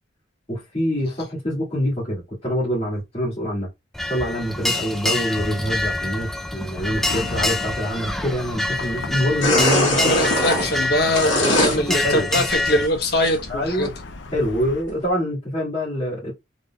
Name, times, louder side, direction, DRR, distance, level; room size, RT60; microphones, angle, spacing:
voice 1, 0.5-3.7 4.1-10.3 11.2-12.4 13.5-13.9 14.3-16.3, equal, 30° left, 2.0 m, -25 dB
sound 1, 3.9-12.9, left 2 dB, ahead, 0.3 m, -26 dB
Chatter / Car passing by / Traffic noise roadway noise, 6.8-14.8, left 3 dB, 70° left, 0.5 m, -37 dB
sound 2, 9.4-11.8 12.2-13.3 13.8-13.9 14.3-14.4 14.9-15.0, left 1 dB, 90° left, 1.4 m, -21 dB
voice 2, 10.0-13.9, left 1 dB, 55° left, 1.0 m, -22 dB
3.8 x 3.7 x 2.3 m
head